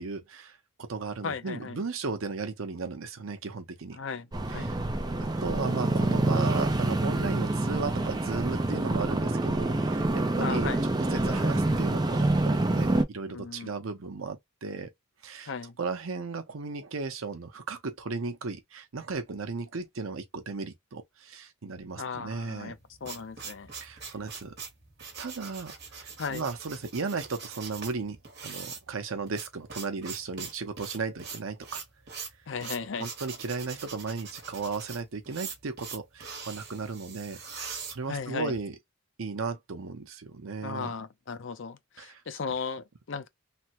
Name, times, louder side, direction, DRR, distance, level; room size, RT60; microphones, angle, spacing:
voice 1, 0.0-4.0 4.5-4.8 5.2-10.7 11.1-14.9 15.2-15.5 15.8-22.7 23.8-24.5 25.2-28.2 28.4-31.8 33.0-38.7 39.2-40.9 42.0-42.2, right 4 dB, 80° right, 0.7 m, -35 dB
voice 2, 1.2-1.8 3.9-4.7 10.4-10.8 13.3-13.7 15.5-15.8 22.0-23.7 24.0-24.1 26.2-26.5 32.5-33.1 38.1-38.5 40.6-43.3, left 5 dB, 60° left, 0.5 m, -36 dB
sound 1, 4.3-13.0, right 2 dB, 20° right, 0.4 m, -27 dB
sound 2, 22.7-38.6, right 5 dB, 50° right, 1.3 m, -42 dB
3.3 x 2.1 x 2.9 m
head